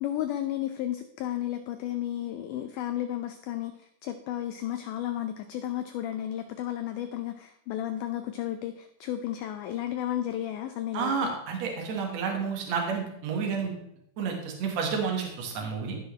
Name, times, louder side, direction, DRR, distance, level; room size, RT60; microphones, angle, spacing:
voice 1, 0.0-11.3, left 12 dB, 85° left, 8 dB, 1.8 m, -33 dB
voice 2, 10.9-13.7 14.2-16.0, right 5 dB, 55° right, 1 dB, 2.5 m, -30 dB
16.0 x 5.7 x 3.2 m, 0.76 s
omnidirectional pair, 4.2 m